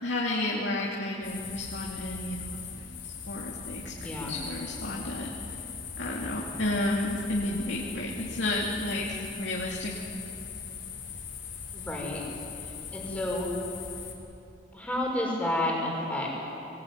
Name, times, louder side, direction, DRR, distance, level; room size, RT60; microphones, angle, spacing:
voice 1, 0.0-3.9 4.2-5.6 6.0-9.9, left 1 dB, 70° left, -3 dB, 2.6 m, -32 dB
sound 1, 1.2-14.1, left 6 dB, 85° left, 3.9 m, -40 dB
voice 2, 4.0-4.3 11.7-12.2 12.9-13.5 14.7-16.3, left 1 dB, 5° left, -3 dB, 5.2 m, -30 dB
22.0 x 19.0 x 9.4 m, 2.8 s
head